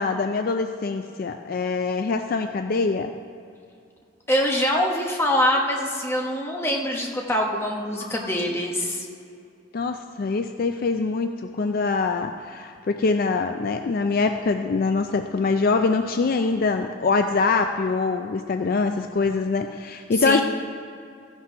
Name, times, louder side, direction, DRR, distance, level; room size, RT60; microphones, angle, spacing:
voice 1, 0.0-3.1 7.9-8.3 9.7-20.4, left 4 dB, 45° left, 6 dB, 0.4 m, -24 dB
voice 2, 4.3-9.1 20.2-20.4, left 1 dB, 10° left, 0 dB, 1.1 m, -24 dB
14.5 x 6.0 x 5.6 m, 2.4 s
head